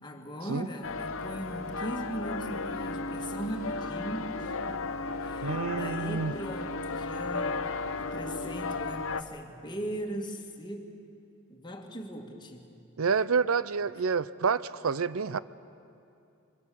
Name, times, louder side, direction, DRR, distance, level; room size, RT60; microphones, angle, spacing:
voice 1, 0.0-4.8 5.2-11.0 11.5-12.7, right 1 dB, 20° left, 3 dB, 1.9 m, -39 dB
sound 1, 0.8-9.2, left 3 dB, 65° left, 0.9 m, -34 dB
voice 2, 5.4-6.3 13.0-15.4, right 5 dB, 75° right, 17 dB, 0.6 m, -28 dB
25.0 x 23.5 x 7.0 m, 2.6 s
head